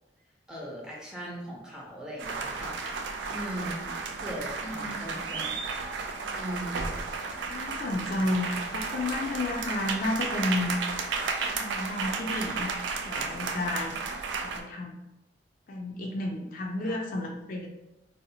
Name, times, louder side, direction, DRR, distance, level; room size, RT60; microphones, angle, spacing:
voice 1, 0.5-2.8 3.3-3.9 4.2-5.5 6.3-6.9 16.8-17.0, equal, 5° right, -5 dB, 0.5 m, -39 dB
sound 1, 2.2-14.6, right 4 dB, 85° right, 0.3 m, -33 dB
voice 2, 4.6-5.2 7.5-10.8 11.5-12.7 13.0-13.9 14.4-14.9 15.7-17.7, left 2 dB, 50° left, 1 dB, 0.3 m, -32 dB
2.7 x 2.0 x 2.7 m, 0.97 s
head